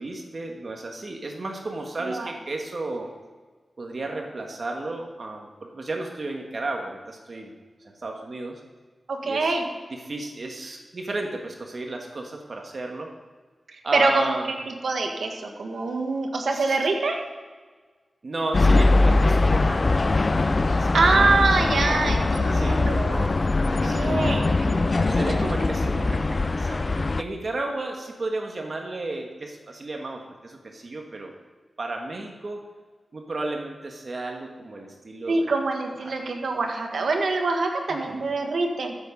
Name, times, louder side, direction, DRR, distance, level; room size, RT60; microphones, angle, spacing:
voice 1, 0.0-3.1 3.8-7.5 7.8-8.6 9.2-9.5 10.1-13.1 13.8-14.5 16.5-16.8 18.2-20.0 20.8-20.9 22.5-22.8 23.8-24.1 25.1-31.3 31.8-32.6 33.1-35.5 36.0-36.1 37.9-38.2, right 2 dB, 55° right, 2 dB, 1.5 m, -33 dB
voice 2, 2.0-2.3 9.1-9.6 13.7-17.3 20.7-23.3 23.6-25.5 35.3-39.0, right 3 dB, 90° right, 3 dB, 1.6 m, -25 dB
sound 1, 18.5-27.2, left 2 dB, 45° left, 0.4 m, -21 dB
14.0 x 7.4 x 5.2 m, 1.4 s
wide cardioid pair, 65°, 0 cm